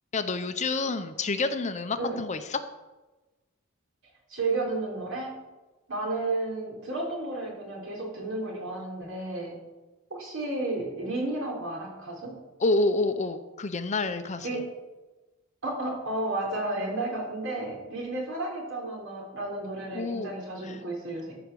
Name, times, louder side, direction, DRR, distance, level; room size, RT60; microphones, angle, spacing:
voice 1, 0.1-2.6 12.6-14.5 19.9-20.3 20.6-20.8, left 3 dB, 35° left, 10 dB, 0.6 m, -28 dB
voice 2, 4.3-5.3 5.9-9.6 10.1-12.3 14.4-14.6 15.6-21.3, right 2 dB, 65° right, -1 dB, 3.6 m, -32 dB
14.0 x 5.0 x 6.7 m, 1.1 s
head